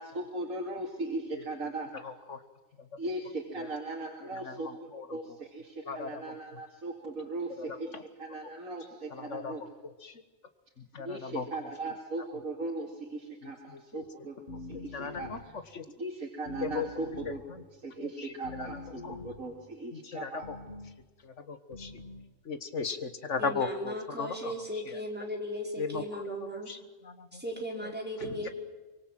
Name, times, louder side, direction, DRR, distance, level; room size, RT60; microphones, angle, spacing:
voice 1, 0.0-1.9 3.0-9.6 11.0-15.5 16.0-17.4 17.8-20.5, right 2 dB, 85° right, 0 dB, 2.9 m, -38 dB
voice 2, 2.0-2.4 2.8-2.9 3.6-3.7 4.2-5.1 5.8-6.3 7.6-8.0 9.1-9.5 9.8-10.2 10.8-11.4 13.4-14.0 14.9-15.4 15.7-15.9 16.6-16.9 17.5-17.6 18.0-18.3 18.6-18.7 19.0-19.2 19.9-20.6 21.2-21.9 22.5-25.0 25.8-27.4 27.8-27.9 28.2-28.5, left 5 dB, 60° left, 10 dB, 1.8 m, -38 dB
sound 1, 14.5-15.6 16.5-17.6 18.4-19.5 20.4-21.0 21.7-22.3, left 3 dB, 40° left, 2.1 m, -44 dB
voice 3, 23.4-26.7 27.3-28.5, equal, 5° right, 0 dB, 4.7 m, -36 dB
24.5 x 23.5 x 7.6 m, 1.2 s
omnidirectional pair, 1.4 m